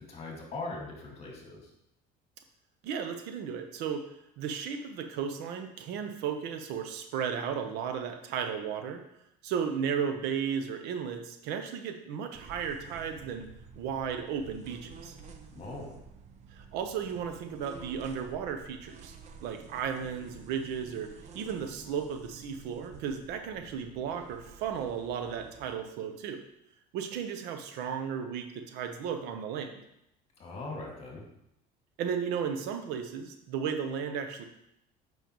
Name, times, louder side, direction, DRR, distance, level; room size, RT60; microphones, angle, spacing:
voice 1, 0.1-1.7 15.6-16.0 30.4-31.2, left 2 dB, 35° left, -1 dB, 2.0 m, -40 dB
voice 2, 2.8-4.0 4.4-9.0 9.4-13.5 13.8-15.2 16.5-19.1 19.4-26.4 26.9-29.7 32.0-34.4, right 7 dB, 70° right, 6 dB, 0.8 m, -34 dB
sound 1, 12.3-25.8, right 5 dB, 40° right, 0.7 m, -50 dB
7.3 x 5.4 x 3.0 m, 0.79 s
cardioid pair, 120°, 18 cm